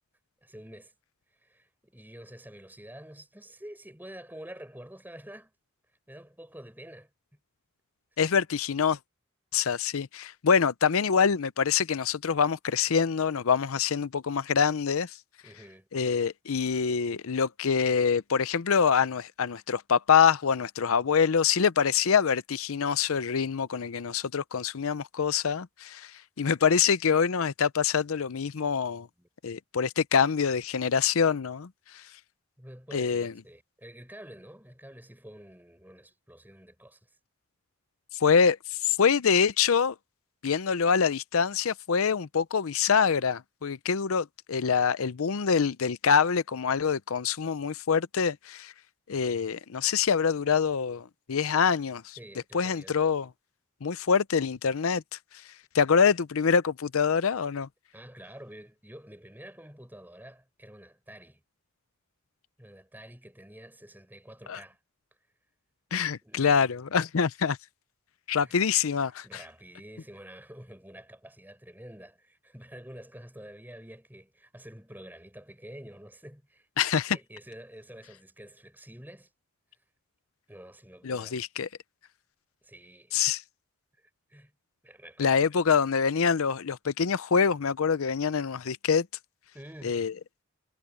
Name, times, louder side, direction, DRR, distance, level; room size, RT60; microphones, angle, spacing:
voice 1, 0.4-0.9 1.3-5.5 6.1-7.1 15.4-15.9 29.2-29.3 32.6-37.0 52.2-53.0 57.9-61.4 62.6-64.8 66.2-66.6 68.4-68.7 69.2-76.7 77.1-79.3 80.5-81.4 82.6-83.1 84.3-84.5 84.8-85.5 89.5-90.0, right 1 dB, 10° right, 7.3 m, -48 dB
voice 2, 8.2-9.0 9.5-15.1 15.9-26.1 26.4-29.1 29.4-31.7 31.9-32.0 32.9-33.3 38.2-39.9 40.4-48.7 49.1-52.2 52.5-53.3 53.8-55.0 55.7-57.7 64.5-64.6 65.9-67.6 68.3-69.4 76.8-77.2 81.0-81.7 83.1-83.4 85.2-89.1 89.8-90.1, left 6 dB, 70° left, 0.6 m, -25 dB
head